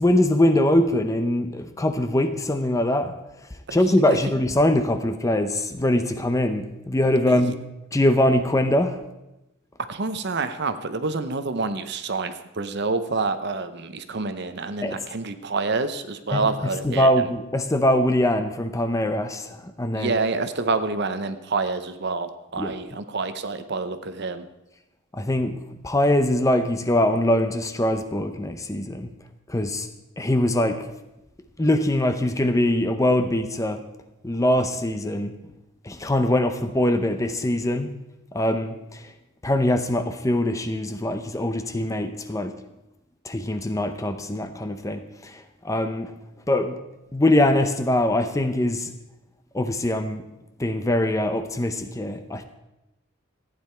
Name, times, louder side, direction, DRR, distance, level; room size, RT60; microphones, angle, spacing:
voice 1, 0.0-3.1 3.7-7.6 7.9-9.0 14.8-15.1 16.3-20.2 22.6-22.8 25.1-25.6 25.8-29.1 29.5-29.9 30.2-30.9 31.6-33.8 34.2-35.3 35.8-37.9 38.3-39.1 39.4-42.5 43.2-46.1 46.5-46.8 47.1-48.9 49.5-50.2 50.6-52.4, left 1 dB, 15° left, 9 dB, 0.6 m, -22 dB
voice 2, 3.7-4.2 9.9-17.1 19.9-24.4, right 3 dB, 50° right, 10 dB, 0.8 m, -27 dB
14.5 x 9.5 x 4.4 m, 0.95 s
head